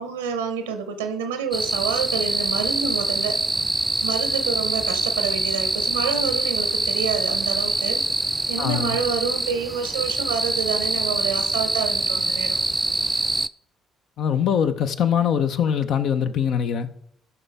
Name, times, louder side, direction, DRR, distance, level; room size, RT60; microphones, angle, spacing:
voice 1, 0.0-3.4 4.0-8.0 8.5-12.6, right 6 dB, 85° right, 0.9 m, -28 dB
sound 1, 1.5-13.5, right 2 dB, 15° right, 0.4 m, -24 dB
voice 2, 8.6-9.0 14.2-16.9, left 8 dB, 65° left, 0.7 m, -22 dB
13.5 x 5.7 x 3.5 m
hypercardioid pair, 45°, 0 cm